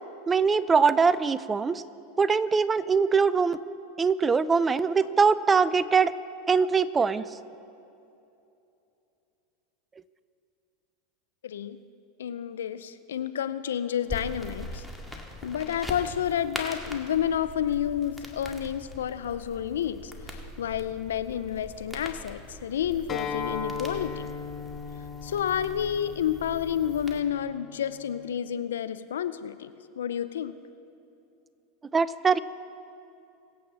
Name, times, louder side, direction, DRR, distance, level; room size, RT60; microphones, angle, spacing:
voice 1, 0.3-1.8 2.2-3.6 4.0-6.1 6.5-7.2 31.9-32.4, right 5 dB, 20° right, 16 dB, 0.5 m, -22 dB
voice 2, 11.4-11.8 12.2-14.8 15.4-24.3 25.2-30.5, left 9 dB, 85° left, 14 dB, 0.5 m, -30 dB
sound 1, 14.1-27.2, left 1 dB, ahead, 1.9 m, -42 dB
Acoustic guitar, 23.1-28.3, left 6 dB, 35° left, 1.5 m, -38 dB
23.5 x 8.5 x 4.2 m, 2.7 s
hypercardioid pair, 95°, 0 cm